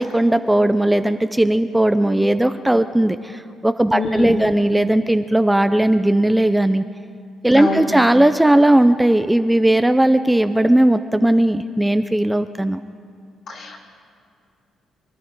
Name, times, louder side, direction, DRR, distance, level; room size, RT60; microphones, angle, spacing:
voice 1, 0.0-6.8 7.4-12.8, right 1 dB, 5° right, 10 dB, 0.5 m, -17 dB
voice 2, 3.9-4.5 7.5-7.9 13.5-13.8, left 2 dB, 60° left, 0 dB, 2.5 m, -25 dB
24.5 x 12.0 x 4.7 m, 2.5 s
cardioid pair, 90°, 0 cm